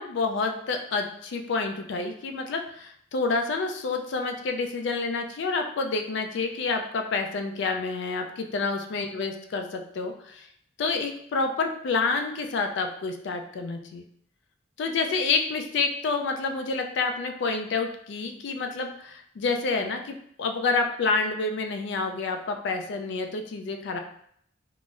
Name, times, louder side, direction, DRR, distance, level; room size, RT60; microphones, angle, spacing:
voice 1, 0.0-8.2 8.5-10.5 10.8-14.0 14.8-24.0, left 4 dB, 65° left, 4 dB, 0.3 m, -28 dB
3.8 x 2.0 x 2.4 m, 0.67 s
head